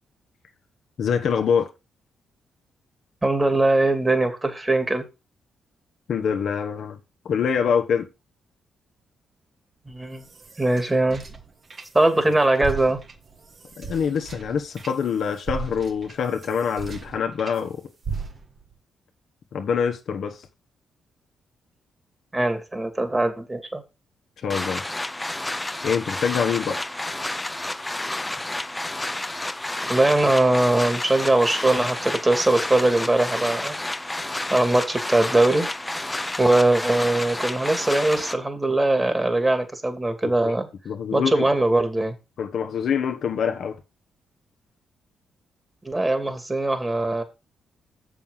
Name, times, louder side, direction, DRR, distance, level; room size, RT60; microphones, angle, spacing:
voice 1, 1.0-1.7 6.1-7.0 7.2-8.1 12.3-12.4 13.8-17.8 19.5-20.4 24.4-24.8 25.8-26.8 40.2-40.5 40.8-41.4 42.4-43.8, left 7 dB, 65° left, 1.3 m, -25 dB
voice 2, 3.2-5.0 9.9-10.2 10.6-11.2 11.9-13.0 22.3-23.8 29.9-33.8 34.5-35.7 36.4-40.7 41.1-42.2 45.8-47.2, right 2 dB, 20° right, 2.6 m, -21 dB
sound 1, 9.9-12.2 12.5-17.6 18.0-18.7, right 5 dB, 45° right, 1.5 m, -37 dB
sound 2, 24.5-38.3, left 1 dB, 15° left, 0.8 m, -30 dB
7.2 x 6.3 x 5.6 m
supercardioid pair, 50°, 0 cm